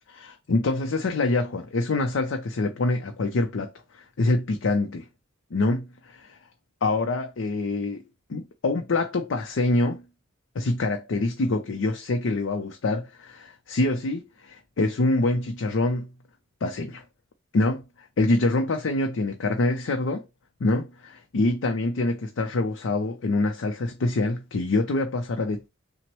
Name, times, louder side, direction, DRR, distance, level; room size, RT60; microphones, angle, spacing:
voice 1, 0.1-5.1 5.5-5.8 6.1-6.4 6.8-8.0 8.3-10.0 10.6-16.1 16.6-17.0 17.5-17.8 18.2-20.2 20.6-25.7, left 2 dB, 70° left, 0.5 m, -25 dB
5.9 x 2.1 x 3.0 m
head